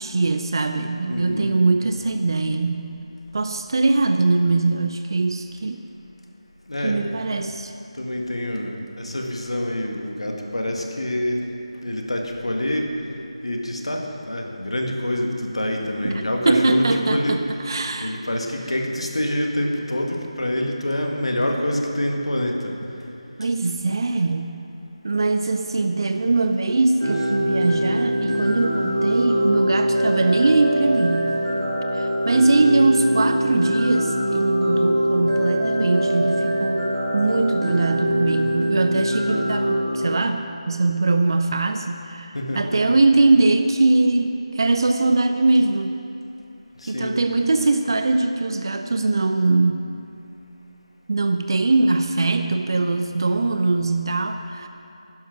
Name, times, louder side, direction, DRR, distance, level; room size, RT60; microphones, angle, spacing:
voice 1, 0.0-2.9 3.3-5.8 6.8-7.7 16.0-17.4 17.6-18.1 23.4-24.5 25.0-31.3 31.9-46.0 46.9-49.8 51.1-54.7, right 3 dB, 40° right, 7 dB, 0.5 m, -21 dB
voice 2, 1.1-1.5 6.7-7.0 7.9-11.4 11.8-12.9 13.4-17.4 18.0-22.7 42.3-43.0 46.8-47.2, left 1 dB, 60° left, 2 dB, 1.7 m, -26 dB
sound 1, 27.0-39.8, equal, 60° right, 3.3 m, -23 dB
11.0 x 10.5 x 6.0 m, 2.7 s
figure-of-eight pair, 160°, 3 cm